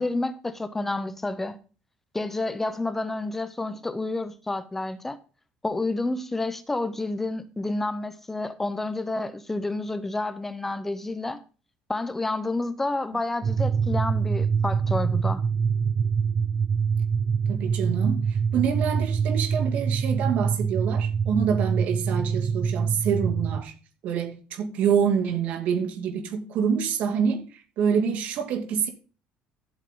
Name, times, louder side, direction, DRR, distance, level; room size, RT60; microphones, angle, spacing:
voice 1, 0.0-1.6 2.1-5.2 5.6-11.4 11.9-15.4, left 2 dB, 10° left, 0.8 m, -29 dB
sound 1, 13.4-23.6, right 6 dB, 25° right, 0.6 m, -25 dB
voice 2, 17.5-23.7 24.0-27.5 27.8-28.9, right 7 dB, 55° right, 2.5 m, -26 dB
13.0 x 8.2 x 3.8 m
cardioid pair, 170°, 3 cm